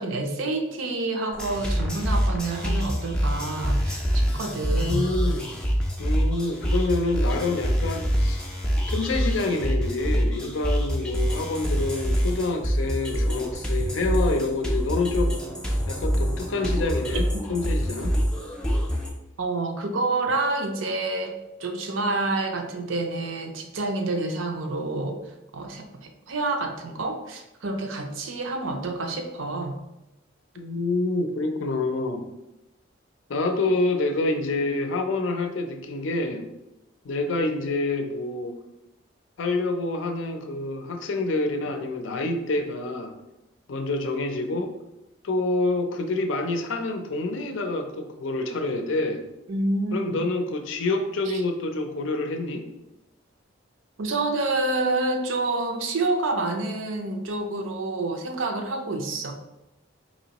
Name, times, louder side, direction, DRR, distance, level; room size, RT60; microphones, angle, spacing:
voice 1, 0.0-5.0 19.4-25.2 25.5-29.7 49.5-50.2 51.3-51.4 54.0-59.3, right 2 dB, 75° right, 5 dB, 0.5 m, -28 dB
sound 1, 1.3-19.1, equal, 5° left, 0.3 m, -26 dB
voice 2, 4.7-5.5 6.0-8.4 8.9-15.3 15.9-18.1 30.6-32.3 33.3-36.5 37.0-38.6 39.4-43.1 43.7-44.7 45.2-49.2 49.9-52.7, left 2 dB, 70° left, 5 dB, 0.5 m, -27 dB
4.2 x 2.9 x 2.8 m, 0.95 s
head